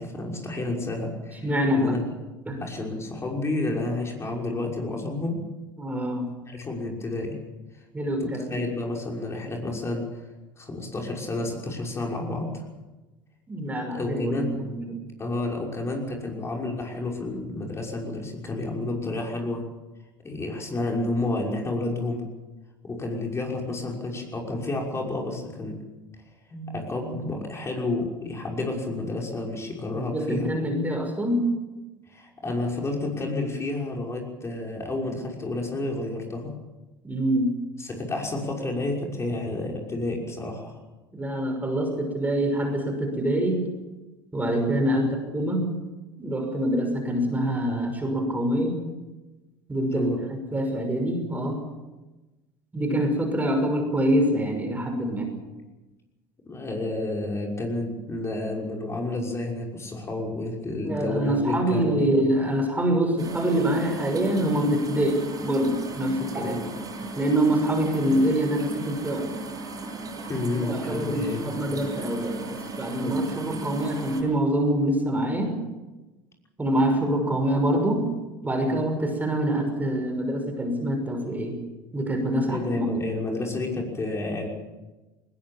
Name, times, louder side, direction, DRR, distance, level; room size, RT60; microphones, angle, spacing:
voice 1, 0.0-1.5 1.7-2.0 2.6-5.4 6.5-7.4 8.2-10.2 10.6-12.6 13.9-14.6 15.2-19.6 20.2-22.2 22.8-25.8 26.5-30.5 32.1-36.5 37.8-40.8 49.9-50.2 56.4-62.1 66.4-66.7 70.3-71.5 73.0-73.1 78.6-78.8 82.5-84.5, left 2 dB, 25° left, 0 dB, 6.0 m, -30 dB
voice 2, 1.4-2.0 2.5-2.6 5.8-6.3 7.9-8.7 13.5-15.0 29.9-31.5 37.0-37.6 41.1-43.7 44.3-45.8 46.2-48.8 49.7-51.6 52.7-55.3 60.8-66.6 67.2-69.3 70.5-75.6 76.6-78.1 78.4-81.6 81.9-82.9, right 1 dB, 15° right, 4 dB, 6.0 m, -25 dB
sound 1, 63.2-74.2, right 3 dB, 30° right, 7.7 m, -36 dB
20.5 x 20.0 x 7.4 m, 1.1 s
hypercardioid pair, 80°, 11 cm